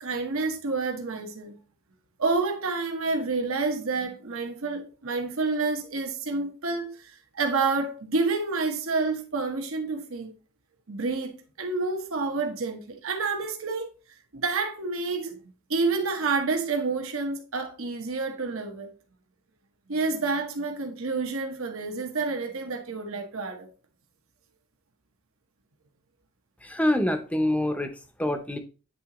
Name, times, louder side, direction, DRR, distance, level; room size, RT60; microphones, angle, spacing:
voice 1, 0.0-1.6 2.2-10.3 10.9-13.9 14.3-15.4 15.7-18.9 19.9-23.7, right 3 dB, 75° right, 1.1 m, -29 dB
voice 2, 26.6-28.6, left 1 dB, 5° left, 0.6 m, -26 dB
9.2 x 3.8 x 3.0 m
head